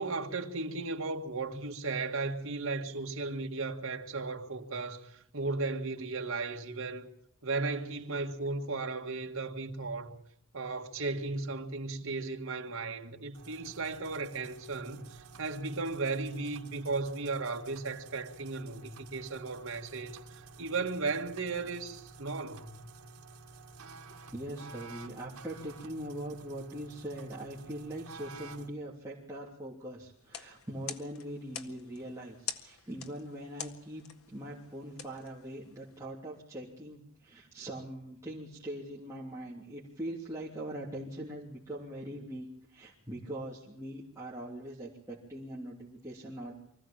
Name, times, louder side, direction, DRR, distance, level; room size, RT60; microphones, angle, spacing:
voice 1, 0.0-7.1 7.4-10.2 10.5-22.8, right 3 dB, 65° right, 2.1 m, -35 dB
sound 1, 13.3-28.7, right 3 dB, 85° right, 1.9 m, -51 dB
voice 2, 24.3-46.5, right 1 dB, 15° right, 3.2 m, -42 dB
sound 2, 30.2-36.0, left 8 dB, 80° left, 1.8 m, -46 dB
24.5 x 15.5 x 8.8 m
head